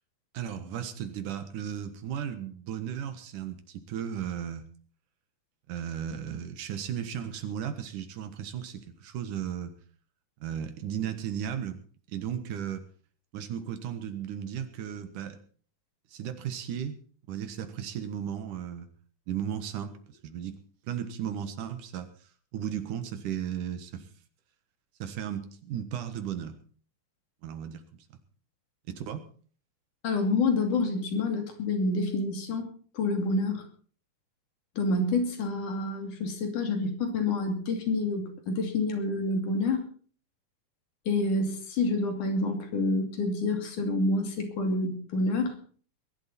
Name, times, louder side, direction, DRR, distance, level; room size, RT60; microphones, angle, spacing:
voice 1, 0.3-4.7 5.7-9.7 10.4-11.8 12.1-12.8 13.3-15.4 16.1-17.0 17.3-18.9 19.3-19.9 20.2-20.6 20.9-22.1 22.5-24.1 25.0-26.6 27.4-27.8 28.9-29.3, right 9 dB, 80° right, 8 dB, 2.9 m, -35 dB
voice 2, 30.0-32.7 32.9-33.6 34.8-39.8 41.1-45.6, left 2 dB, 80° left, 5 dB, 4.1 m, -28 dB
21.5 x 11.5 x 4.3 m, 0.43 s
omnidirectional pair, 3.6 m